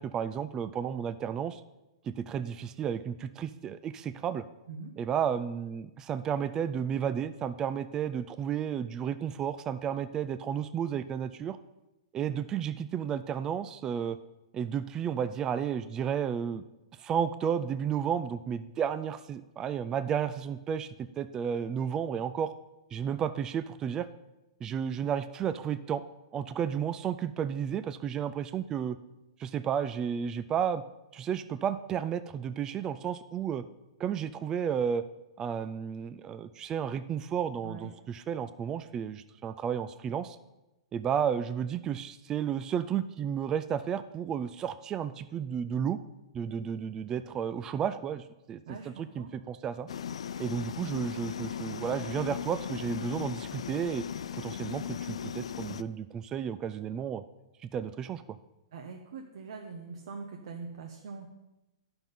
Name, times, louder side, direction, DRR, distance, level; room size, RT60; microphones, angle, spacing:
voice 1, 0.0-1.6 2.0-4.5 5.0-11.6 12.1-14.2 14.5-16.6 17.0-20.9 21.2-22.5 22.9-24.1 24.6-26.0 26.3-29.0 29.4-30.8 31.1-33.6 34.0-35.0 35.4-40.4 40.9-46.0 46.3-49.9 50.4-54.0 54.3-57.2 57.6-58.4, right 8 dB, 20° right, 13 dB, 0.3 m, -32 dB
voice 2, 48.7-49.3 58.7-61.3, right 4 dB, 65° right, 2 dB, 1.0 m, -42 dB
sound 1, 49.9-55.8, left 8 dB, 85° left, 0.4 m, -38 dB
10.5 x 5.9 x 5.3 m, 0.98 s
hypercardioid pair, 145°, 3 cm